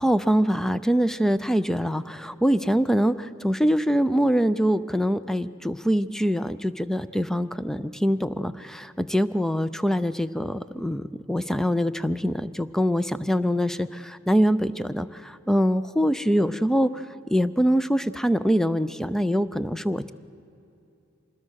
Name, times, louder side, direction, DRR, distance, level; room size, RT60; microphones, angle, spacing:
voice 1, 0.0-20.1, equal, ahead, 14 dB, 0.4 m, -24 dB
26.0 x 20.5 x 6.4 m, 2.7 s
head